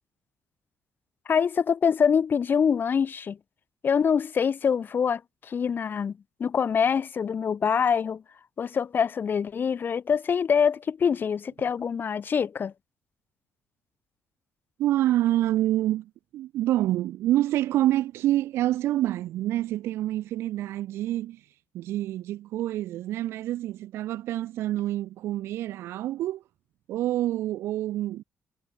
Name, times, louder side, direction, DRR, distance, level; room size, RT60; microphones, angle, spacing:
voice 1, 1.3-3.4 3.8-6.1 6.4-8.2 8.6-12.7, left 7 dB, 45° left, 1.2 m, -25 dB
voice 2, 14.8-21.4 21.7-26.4 26.9-28.2, right 14 dB, 65° right, 2.0 m, -27 dB
hypercardioid pair, 45°, 5 cm